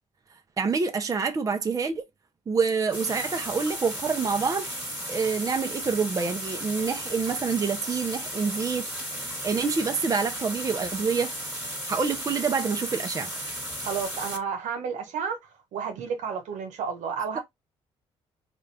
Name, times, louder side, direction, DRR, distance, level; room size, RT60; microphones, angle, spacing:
voice 1, 0.6-2.0 2.5-4.7 5.1-8.8 9.1-11.3 11.9-13.3 17.3-17.4, right 5 dB, 30° right, 0.7 m, -27 dB
sound 1, 2.9-14.4, equal, 15° right, 1.5 m, -35 dB
voice 2, 13.8-15.4 15.7-17.4, right 6 dB, 85° right, 1.2 m, -31 dB
3.9 x 2.4 x 3.3 m
cardioid pair, 110°, 12 cm